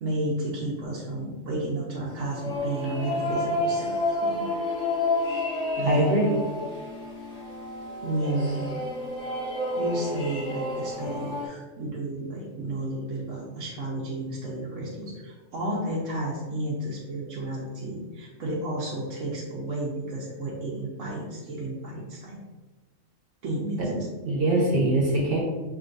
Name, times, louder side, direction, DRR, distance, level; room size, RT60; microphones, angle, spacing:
voice 1, 0.0-3.9 4.2-4.5 5.8-6.1 8.0-8.7 9.8-22.4 23.4-24.1 24.5-24.7, right 1 dB, 70° right, -5 dB, 1.1 m, -32 dB
sound 1, 2.1-11.5, left 2 dB, 55° left, 1.3 m, -30 dB
voice 2, 5.8-6.3 23.9-25.4, right 1 dB, 45° right, -4 dB, 1.2 m, -23 dB
5.9 x 3.0 x 2.6 m, 1.2 s
omnidirectional pair, 1.4 m